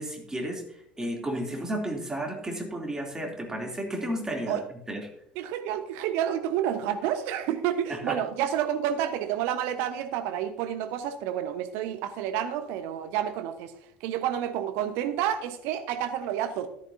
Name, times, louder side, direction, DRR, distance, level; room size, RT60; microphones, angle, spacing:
voice 1, 0.0-4.6 4.9-5.1 7.9-8.2, right 1 dB, 15° right, 1 dB, 3.0 m, -33 dB
voice 2, 5.4-13.7 14.0-16.7, right 10 dB, 60° right, 8 dB, 1.1 m, -29 dB
14.0 x 10.5 x 2.7 m, 0.71 s
figure-of-eight pair, 65°, 5 cm